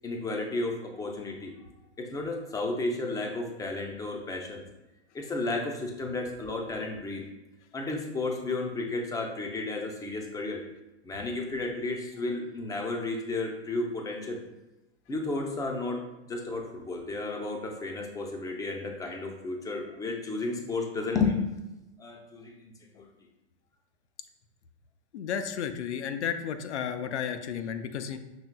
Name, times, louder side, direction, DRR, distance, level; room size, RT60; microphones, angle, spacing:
voice 1, 0.0-1.5 2.0-4.6 5.1-7.2 7.7-10.6 11.0-14.4 15.1-21.4 22.0-23.1, left 3 dB, 10° left, 1 dB, 0.5 m, -33 dB
voice 2, 25.1-28.2, left 8 dB, 80° left, 8 dB, 0.5 m, -33 dB
6.0 x 3.0 x 2.2 m, 1.0 s
hypercardioid pair, 105°, 34 cm